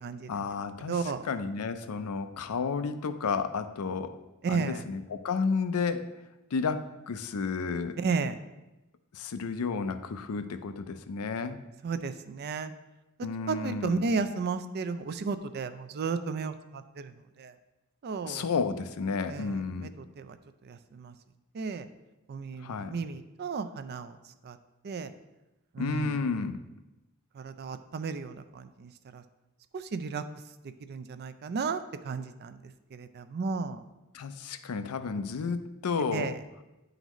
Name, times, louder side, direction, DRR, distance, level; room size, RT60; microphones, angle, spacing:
voice 1, 0.3-4.2 4.5-6.1 6.5-8.0 9.1-11.6 13.2-14.0 18.2-19.9 22.6-23.0 25.8-26.6 34.1-36.3, left 5 dB, 80° left, 11 dB, 0.5 m, -32 dB
voice 2, 0.9-1.2 4.4-4.8 8.0-8.4 11.8-12.7 13.5-17.5 18.0-18.5 19.3-19.9 20.2-20.4 20.6-21.1 21.5-21.9 22.3-24.2 24.4-24.6 24.8-25.1 25.7-26.1 27.3-29.2 29.7-30.2 30.8-32.6 32.9-33.8 36.1-36.4, right 4 dB, 45° right, 11 dB, 0.3 m, -33 dB
10.0 x 3.9 x 3.0 m, 1.0 s
head